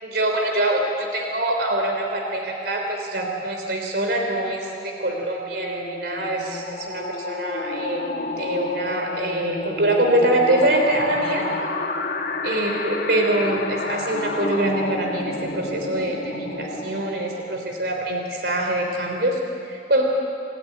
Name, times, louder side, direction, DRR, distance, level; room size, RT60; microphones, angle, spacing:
voice 1, 0.0-8.1 8.4-11.5 12.4-20.0, right 1 dB, 65° right, 2 dB, 3.5 m, -24 dB
sound 1, 5.2-17.8, left 2 dB, 55° left, 1.5 m, -30 dB
28.0 x 14.0 x 9.5 m, 2.4 s
head